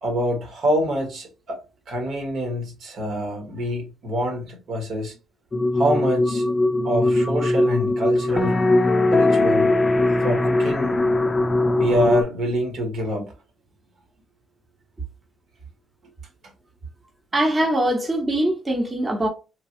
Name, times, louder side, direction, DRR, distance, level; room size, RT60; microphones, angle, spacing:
voice 1, 0.0-1.6 1.9-5.1 5.7-6.5 6.8-8.6 9.1-9.7 10.2-11.0 11.8-13.3, equal, 70° right, 1.2 m, -26 dB
sound 1, 5.5-12.2, left 2 dB, 30° left, 0.4 m, -20 dB
voice 2, 17.3-19.3, right 1 dB, 25° right, 0.9 m, -22 dB
3.2 x 2.2 x 2.6 m
cardioid pair, 90°, 0 cm